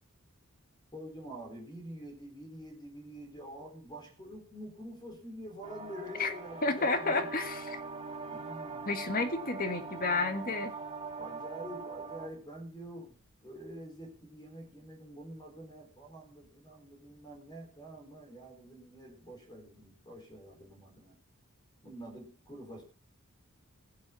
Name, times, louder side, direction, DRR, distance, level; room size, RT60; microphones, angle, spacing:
voice 1, 0.9-7.3 8.2-8.9 11.2-13.2 13.4-21.2 21.8-22.8, right 1 dB, 20° left, 2 dB, 4.4 m, -47 dB
sound 1, 5.6-12.3, right 4 dB, 25° right, 2.6 m, -42 dB
voice 2, 6.6-7.8 8.9-10.7, left 3 dB, 40° left, 7 dB, 1.9 m, -31 dB
16.0 x 8.6 x 7.4 m, 0.40 s
head